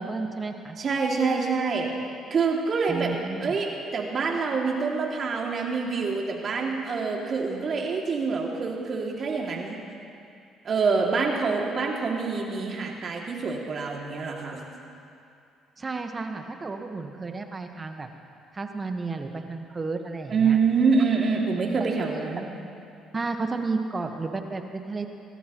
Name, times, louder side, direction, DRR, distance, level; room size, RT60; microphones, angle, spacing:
voice 1, 0.0-0.8 2.9-3.6 15.8-18.1 18.5-20.6 23.1-25.1, right 3 dB, 30° right, 5 dB, 1.4 m, -32 dB
voice 2, 0.8-1.9 2.3-3.1 3.4-9.8 10.6-14.6 20.3-22.5, right 4 dB, 50° right, -1 dB, 2.5 m, -26 dB
25.5 x 13.0 x 3.1 m, 2.5 s
hypercardioid pair, 55°, 0 cm